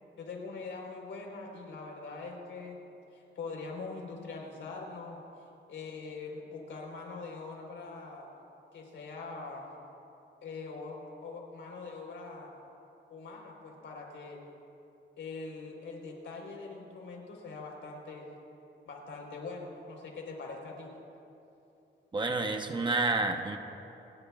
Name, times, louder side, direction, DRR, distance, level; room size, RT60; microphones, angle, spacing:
voice 1, 0.2-5.2 5.7-8.3 8.7-9.7 10.4-12.5 13.1-14.4 15.2-18.3 18.9-20.9, left 4 dB, 75° left, 0 dB, 4.0 m, -43 dB
voice 2, 22.1-23.6, right 3 dB, 25° right, 4 dB, 0.9 m, -29 dB
28.5 x 21.0 x 2.4 m, 2.9 s
wide cardioid pair, 160°, 20 cm